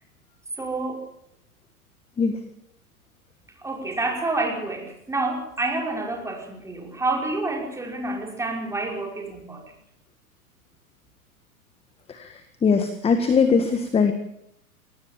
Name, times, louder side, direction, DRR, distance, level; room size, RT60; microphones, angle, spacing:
voice 1, 0.6-1.1 3.6-9.7, right 2 dB, 5° right, 2 dB, 5.3 m, -28 dB
voice 2, 12.6-14.1, left 5 dB, 15° left, 9 dB, 1.7 m, -20 dB
22.5 x 18.5 x 7.3 m, 0.77 s
hypercardioid pair, 120°, 44 cm